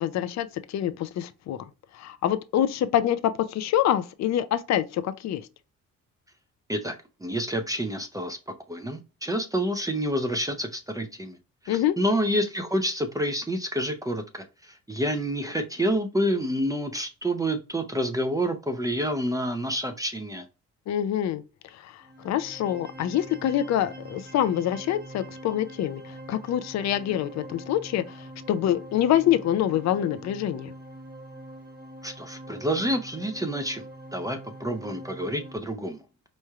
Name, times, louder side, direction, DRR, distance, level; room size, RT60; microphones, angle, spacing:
voice 1, 0.0-1.6 1.9-5.5 11.7-12.0 20.9-21.4 21.7-30.7, left 11 dB, 60° left, 0.5 m, -26 dB
voice 2, 6.7-8.4 8.7-11.4 11.6-20.4 32.0-33.8 34.1-36.0, equal, 10° right, 0.6 m, -28 dB
sound 1, 22.0-35.6, right 1 dB, 30° right, 1.2 m, -44 dB
4.3 x 3.1 x 2.3 m
cardioid pair, 90°, 30 cm